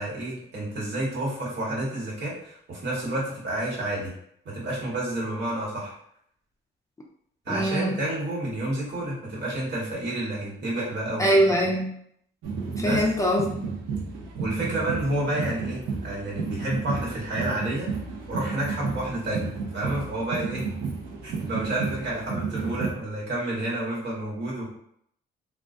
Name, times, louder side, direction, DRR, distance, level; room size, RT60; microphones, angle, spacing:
voice 1, 0.0-4.1 4.4-5.9 7.4-11.3 12.8-13.0 14.4-17.9 18.3-20.7 21.2-24.7, right 1 dB, 65° right, -5 dB, 1.3 m, -30 dB
voice 2, 7.5-8.0 11.2-11.9 12.8-13.7, equal, 15° left, -1 dB, 0.4 m, -22 dB
sound 1, 12.4-22.9, right 5 dB, 85° right, 0.5 m, -32 dB
2.3 x 2.1 x 2.5 m, 0.69 s
cardioid pair, 90°, 20 cm